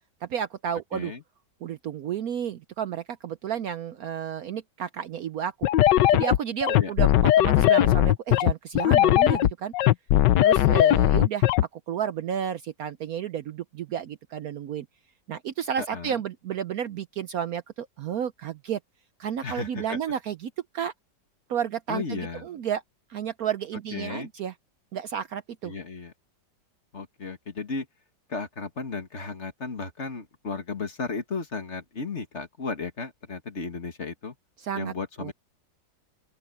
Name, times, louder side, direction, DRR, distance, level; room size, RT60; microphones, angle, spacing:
voice 1, 0.2-1.1 1.6-5.7 6.1-9.7 10.4-14.9 15.3-18.8 19.2-20.9 21.5-22.8 23.1-24.5 24.9-25.7 34.6-34.9 35.2-35.3, right 8 dB, 65° right, 1.0 m, -32 dB
voice 2, 0.9-1.2 6.8-6.9 15.8-16.2 19.4-20.0 21.9-22.4 23.9-24.3 25.6-26.1 26.9-27.9 28.3-34.3 34.8-35.3, left 4 dB, 40° left, 2.1 m, -34 dB
sound 1, 5.6-11.6, left 13 dB, 75° left, 1.3 m, -19 dB
open air
omnidirectional pair, 1.9 m